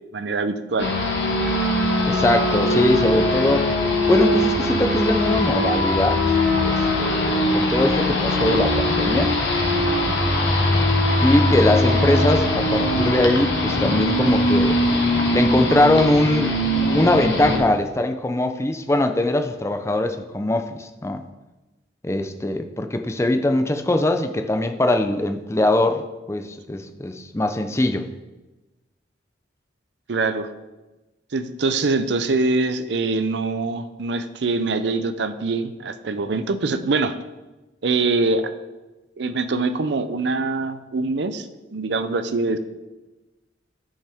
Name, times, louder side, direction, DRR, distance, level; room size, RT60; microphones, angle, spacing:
voice 1, 0.1-0.9 30.1-30.5 31.3-37.1 37.8-38.4 39.2-41.5 41.7-42.6, right 3 dB, 65° right, 10 dB, 0.5 m, -23 dB
sound 1, 0.8-17.6, left 1 dB, 85° left, 1.4 m, -21 dB
voice 2, 2.1-3.7 4.1-6.2 6.6-9.4 11.2-14.8 15.3-16.6 16.9-21.2 22.0-26.0 26.3-28.1, left 1 dB, 15° left, 7 dB, 0.4 m, -21 dB
10.0 x 5.4 x 3.5 m, 1.1 s
head